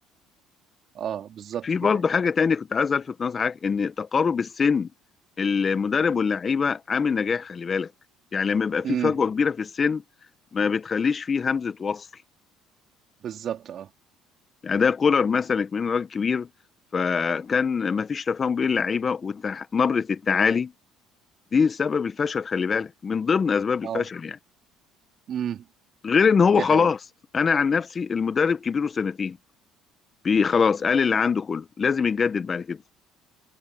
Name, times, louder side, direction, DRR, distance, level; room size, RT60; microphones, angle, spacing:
voice 1, 0.9-2.0 8.8-9.1 13.2-13.9 23.8-24.0 25.3-25.6 26.6-26.9, right 9 dB, 55° right, 4.3 m, -31 dB
voice 2, 1.6-4.9 5.4-7.9 8.3-10.0 10.5-12.1 14.6-16.5 16.9-20.7 21.5-24.4 26.0-27.0 27.3-29.4 30.2-32.8, left 5 dB, 35° left, 1.5 m, -23 dB
hypercardioid pair, 70°, 0 cm